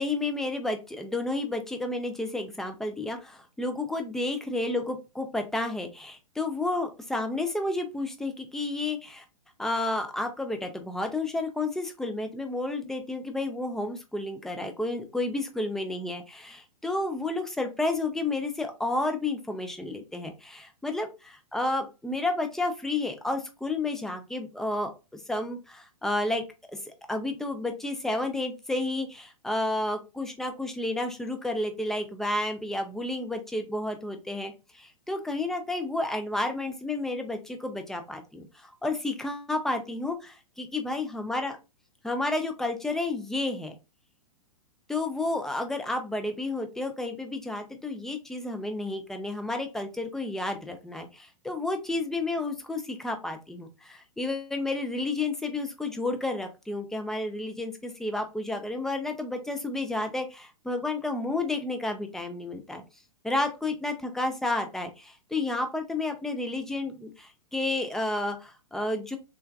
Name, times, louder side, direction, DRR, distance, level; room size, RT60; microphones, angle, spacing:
voice 1, 0.0-9.2 9.6-26.4 26.7-41.6 42.0-43.8 44.9-62.8 63.2-69.2, left 2 dB, ahead, 5 dB, 0.3 m, -31 dB
3.4 x 2.2 x 2.3 m, 0.28 s
figure-of-eight pair, 110°, 19 cm